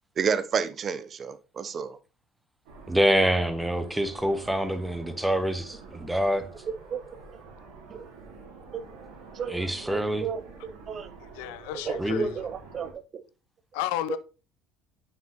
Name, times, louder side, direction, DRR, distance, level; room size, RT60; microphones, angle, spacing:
voice 1, 0.2-2.0 6.9-7.0 7.9-8.1 8.7-8.9 9.3-11.1 11.9-13.2 14.1-14.2, right 6 dB, 45° right, 0.5 m, -31 dB
Jet noise, 2.7-12.9, right 4 dB, 70° right, 2.0 m, -47 dB
voice 2, 2.9-6.4 9.5-10.3 12.0-12.3, equal, 5° right, 0.9 m, -26 dB
voice 3, 11.2-12.5 13.7-14.2, left 13 dB, 75° left, 0.4 m, -33 dB
7.3 x 5.6 x 2.9 m
hypercardioid pair, 65°, 0 cm